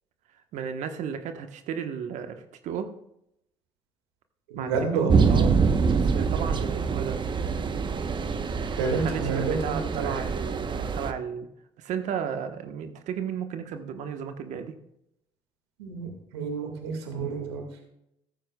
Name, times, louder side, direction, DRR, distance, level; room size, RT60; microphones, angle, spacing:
voice 1, 0.5-2.9 4.5-7.2 8.8-11.5 11.8-14.8, right 7 dB, 65° right, 7 dB, 1.3 m, -34 dB
voice 2, 4.5-5.3 8.7-10.2 15.8-17.9, right 5 dB, 85° right, 3 dB, 2.1 m, -30 dB
sound 1, 5.1-11.1, right 5 dB, 35° right, 1.0 m, -25 dB
14.0 x 13.5 x 2.4 m, 0.81 s
hypercardioid pair, 60°, 13 cm